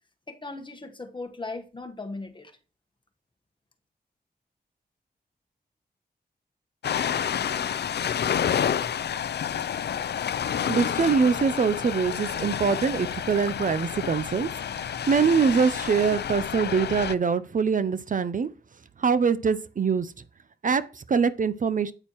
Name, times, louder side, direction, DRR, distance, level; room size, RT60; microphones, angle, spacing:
voice 1, 0.3-2.5, left 3 dB, 25° left, 1.2 m, -38 dB
Ocean, 6.8-17.1, left 8 dB, 70° left, 0.4 m, -29 dB
voice 2, 10.7-14.5 14.7-18.5 19.0-20.1 20.6-21.9, right 5 dB, 50° right, 0.5 m, -24 dB
8.8 x 8.6 x 3.0 m
wide cardioid pair, 90°, 18 cm